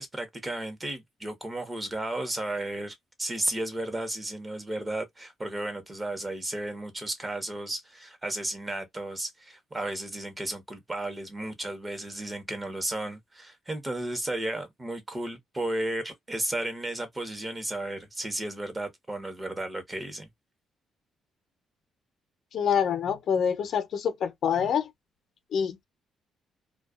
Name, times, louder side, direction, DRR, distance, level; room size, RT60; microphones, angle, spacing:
voice 1, 0.0-20.3, right 1 dB, 20° right, 0.9 m, -34 dB
voice 2, 22.5-24.9 25.5-25.8, left 7 dB, 65° left, 0.7 m, -26 dB
2.3 x 2.3 x 2.3 m
cardioid pair, 90°, 0 cm